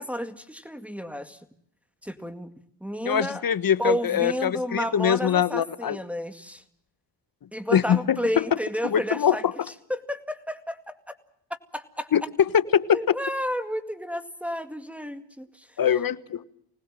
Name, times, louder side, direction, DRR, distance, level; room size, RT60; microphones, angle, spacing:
voice 1, 0.0-1.4 2.0-2.5 2.8-3.4 3.8-6.6 7.5-9.4 9.9-11.2 11.7-12.1 12.9-15.7, equal, 5° right, 7 dB, 2.1 m, -31 dB
voice 2, 3.0-6.0 7.7-8.4 8.8-9.4 12.1-12.2 12.5-13.2 15.8-16.5, left 8 dB, 50° left, 15 dB, 1.4 m, -23 dB
25.5 x 19.0 x 7.5 m, 0.69 s
cardioid pair, 70°, 46 cm